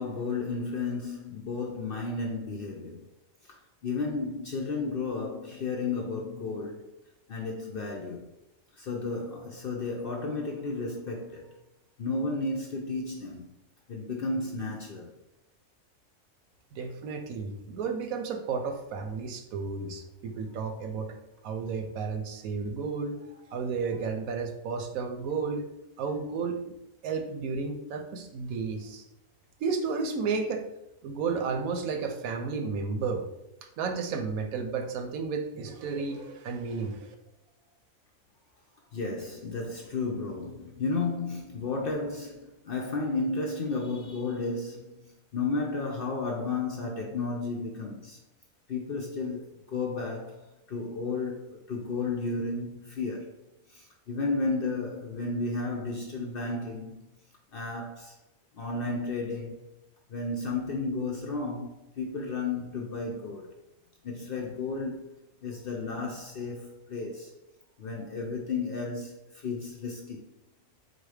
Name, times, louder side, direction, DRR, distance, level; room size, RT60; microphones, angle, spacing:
voice 1, 0.0-3.1 3.4-6.9 7.3-8.3 8.7-11.5 12.0-13.5 13.9-15.1 38.9-48.2 48.7-53.4 53.7-57.1 57.5-58.2 58.5-59.7 60.1-63.5 64.0-65.1 65.4-67.3 67.8-70.2, left 3 dB, 60° left, 0.6 m, -33 dB
voice 2, 16.7-21.2 21.4-25.7 26.0-26.6 27.0-29.0 29.6-30.6 31.0-33.3 33.8-37.1, right 5 dB, 85° right, 1.1 m, -32 dB
4.0 x 2.6 x 4.8 m
omnidirectional pair, 1.4 m